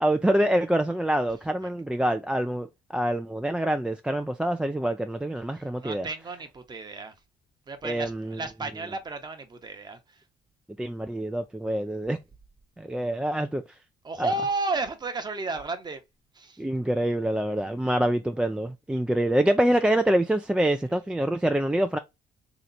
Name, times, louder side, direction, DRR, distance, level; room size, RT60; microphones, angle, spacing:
voice 1, 0.0-6.1 7.8-8.4 10.8-12.2 12.8-13.6 14.2-14.3 16.6-22.0, right 1 dB, 5° right, 0.3 m, -26 dB
voice 2, 5.8-7.1 7.7-10.0 14.0-16.0 16.4-16.6, right 3 dB, 25° right, 0.9 m, -32 dB
3.2 x 2.9 x 3.9 m
cardioid pair, 110°, 17 cm